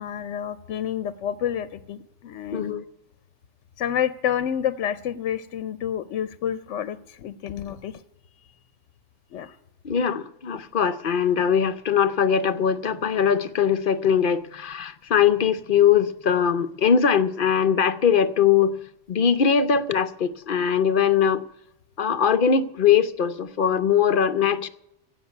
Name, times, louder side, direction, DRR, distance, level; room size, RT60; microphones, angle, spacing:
voice 1, 0.0-2.8 3.8-8.0 9.3-9.6, left 9 dB, 75° left, 1.0 m, -29 dB
voice 2, 2.5-2.8 9.8-18.8 19.1-21.4 22.0-24.7, left 7 dB, 55° left, 0.7 m, -21 dB
16.0 x 5.8 x 9.4 m
omnidirectional pair, 1.2 m